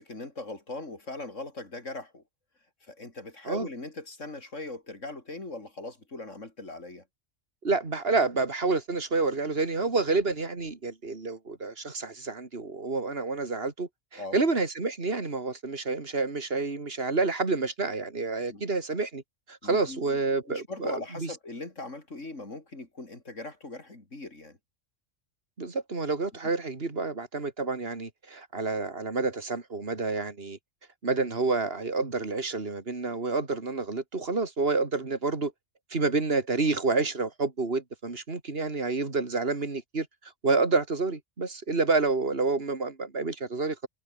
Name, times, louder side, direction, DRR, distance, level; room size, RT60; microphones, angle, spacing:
voice 1, 0.0-2.2 2.8-7.0 14.2-14.4 18.5-18.6 19.6-20.2 20.5-24.6, left 2 dB, 80° left, 4.9 m, -40 dB
voice 2, 7.6-19.2 19.5-21.3 25.6-30.6 31.0-35.5 35.9-40.1 40.4-43.9, right 3 dB, 50° right, 3.1 m, -29 dB
omnidirectional pair, 1.3 m